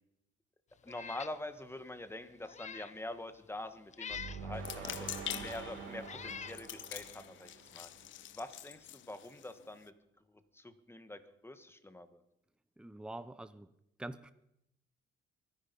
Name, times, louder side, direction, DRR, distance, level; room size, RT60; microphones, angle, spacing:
voice 1, 0.8-5.1 5.3-7.9 8.3-9.9 10.3-12.2, left 1 dB, 10° left, 10 dB, 1.6 m, -45 dB
Meow, 0.9-1.4 1.8-1.9 2.4-3.0 3.9-4.5 5.3-5.4 6.0-6.6, left 7 dB, 35° left, 0.6 m, -45 dB
sound 1, 4.1-8.2, right 5 dB, 90° right, 3.9 m, -46 dB
sound 2, 4.5-9.9, left 12 dB, 75° left, 0.7 m, -46 dB
voice 2, 12.8-13.7 14.0-14.3, right 1 dB, 5° right, 13 dB, 0.7 m, -45 dB
23.5 x 10.5 x 5.4 m, 0.82 s
cardioid pair, 90°, 20 cm